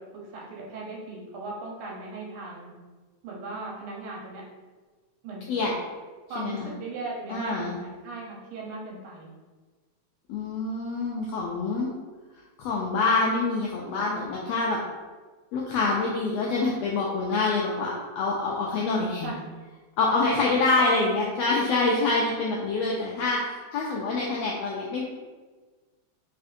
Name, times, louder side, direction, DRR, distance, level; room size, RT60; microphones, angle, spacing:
voice 1, 0.0-2.7 3.2-4.4 5.2-5.7 6.3-9.3 19.2-19.4 20.8-21.3, right 3 dB, 85° right, -2 dB, 2.4 m, -37 dB
voice 2, 6.4-6.7 7.3-7.8 10.3-11.9 12.6-14.8 15.5-19.3 20.0-25.0, left 3 dB, 85° left, -3 dB, 1.4 m, -26 dB
4.1 x 3.7 x 2.5 m, 1.3 s
omnidirectional pair, 3.4 m